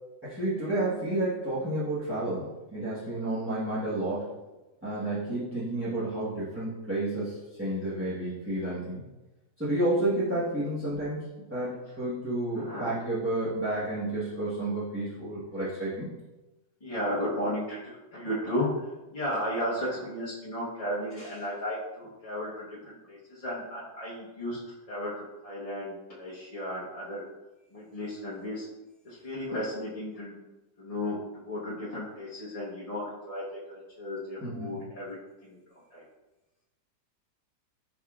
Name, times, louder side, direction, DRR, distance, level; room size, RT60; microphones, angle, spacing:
voice 1, 0.2-2.5 2.7-4.3 4.8-9.0 9.6-11.2 11.5-16.1 34.4-34.7, right 1 dB, 10° right, -11 dB, 0.7 m, -30 dB
voice 2, 12.5-12.9 16.8-18.9 19.1-24.6 24.9-27.2 27.7-28.7 29.0-30.4 30.8-35.2 35.4-35.6 35.9-36.0, left 1 dB, 30° left, -8 dB, 0.6 m, -34 dB
5.5 x 3.5 x 2.3 m, 1.1 s
omnidirectional pair, 1.8 m